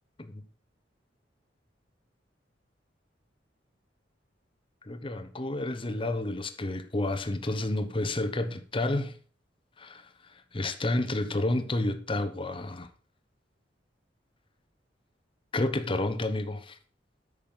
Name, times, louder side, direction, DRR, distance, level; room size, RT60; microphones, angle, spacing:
voice 1, 4.9-9.1 9.8-10.0 10.5-12.9 15.5-16.7, left 2 dB, 30° left, 0.9 m, -30 dB
8.8 x 6.2 x 5.5 m
head